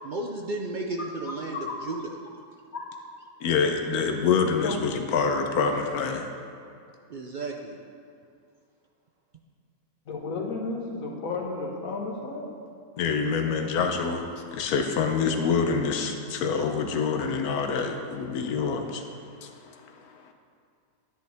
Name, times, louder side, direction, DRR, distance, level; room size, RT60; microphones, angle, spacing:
voice 1, 0.0-2.1 7.1-7.8, right 2 dB, 70° right, 2 dB, 0.4 m, -33 dB
voice 2, 3.4-6.3 13.0-19.1 19.4-20.3, left 5 dB, 90° left, 5 dB, 1.2 m, -26 dB
voice 3, 10.1-12.5, left 3 dB, 70° left, 0 dB, 1.6 m, -32 dB
10.5 x 9.7 x 3.4 m, 2.4 s
omnidirectional pair, 1.5 m